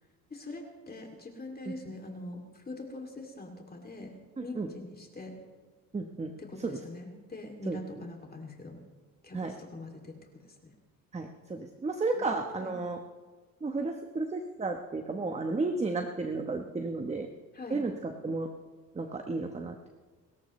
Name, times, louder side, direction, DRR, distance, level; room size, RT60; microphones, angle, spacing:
voice 1, 0.3-5.3 6.4-8.8 9.2-10.7 12.2-12.3 12.6-12.8 17.5-17.8, left 2 dB, 25° left, 2 dB, 2.7 m, -43 dB
voice 2, 4.4-4.7 5.9-6.3 6.6-6.8 7.7-7.8 9.3-9.5 11.1-13.0 13.6-17.3 17.7-18.5 18.9-19.9, right 3 dB, 15° right, 5 dB, 1.1 m, -33 dB
29.5 x 14.0 x 3.2 m, 1.4 s
cardioid pair, 105°, 37 cm